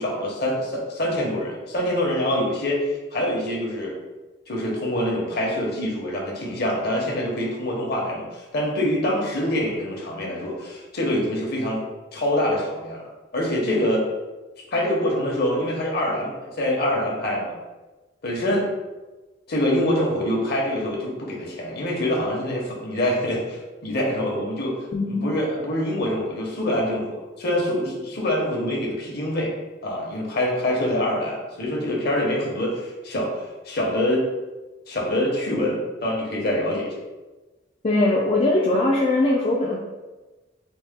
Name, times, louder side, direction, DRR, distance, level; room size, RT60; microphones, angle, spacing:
voice 1, 0.0-4.0 4.5-11.8 12.1-14.0 14.7-17.5 18.2-18.7 19.5-24.7 25.1-29.5 29.8-33.3 33.6-34.2 34.9-36.9, left 1 dB, 60° left, -2 dB, 0.9 m, -25 dB
voice 2, 24.9-25.2 37.8-39.8, left 2 dB, 30° left, -3 dB, 0.4 m, -20 dB
4.1 x 2.1 x 3.6 m, 1.2 s
head